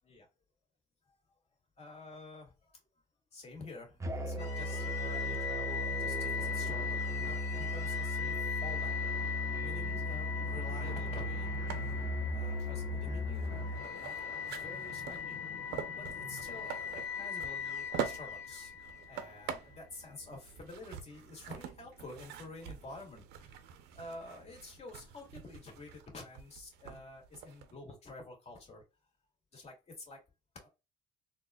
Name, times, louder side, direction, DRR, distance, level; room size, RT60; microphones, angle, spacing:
voice 1, 1.1-1.4 1.8-2.8 3.3-9.3 9.6-12.0 12.3-15.4 16.0-18.7 19.1-28.8 29.5-30.2 30.6-30.7, left 2 dB, 40° left, 1 dB, 1.9 m, -49 dB
Musical instrument, 4.0-13.9, equal, 20° right, 0.6 m, -37 dB
sound 1, 4.4-19.5, left 6 dB, 85° left, 0.9 m, -39 dB
sound 2, 11.7-27.7, right 9 dB, 85° right, 0.6 m, -46 dB
4.0 x 2.4 x 2.3 m, 0.27 s
cardioid pair, 110°, 17 cm